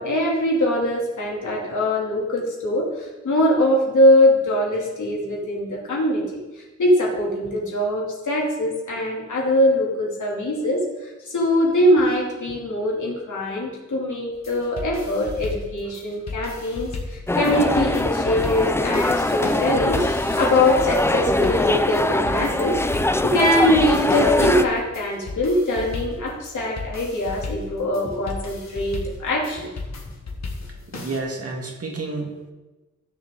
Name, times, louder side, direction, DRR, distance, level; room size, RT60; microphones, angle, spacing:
voice 1, 0.0-22.8 23.2-29.8, left 1 dB, 85° left, -3 dB, 3.0 m, -22 dB
sound 1, 14.3-31.2, left 3 dB, 65° left, 1.8 m, -35 dB
sound 2, 17.3-24.6, left 1 dB, 10° left, 0.4 m, -22 dB
voice 2, 30.3-32.5, right 3 dB, 55° right, 1 dB, 1.9 m, -32 dB
15.5 x 6.9 x 3.8 m, 1.1 s
wide cardioid pair, 130°, 29 cm